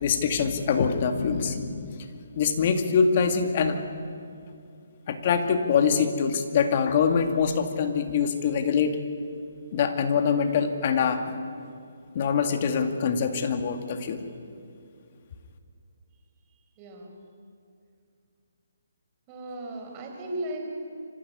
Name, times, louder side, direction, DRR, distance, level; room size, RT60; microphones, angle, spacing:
voice 1, 0.0-2.0 2.3-3.8 5.1-9.0 9.7-11.3 12.1-14.2, left 6 dB, 40° left, 6 dB, 2.2 m, -24 dB
voice 2, 16.8-17.2 19.3-20.6, right 1 dB, 25° right, 2 dB, 5.0 m, -36 dB
25.5 x 15.0 x 9.8 m, 2.4 s
hypercardioid pair, 155°, 0 cm